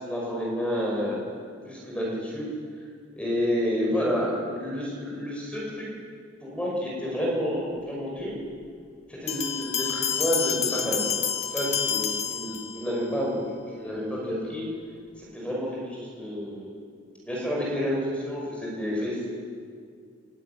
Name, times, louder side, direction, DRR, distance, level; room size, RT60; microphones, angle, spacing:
voice 1, 0.0-1.2 1.7-2.5 3.2-5.9 6.4-8.3 9.1-11.1 11.5-13.4 13.7-14.6 15.3-16.8 17.2-19.2, equal, 5° left, -3 dB, 5.5 m, -29 dB
sound 1, 9.3-13.1, left 7 dB, 35° left, 1.3 m, -28 dB
25.5 x 12.5 x 9.3 m, 2.1 s
head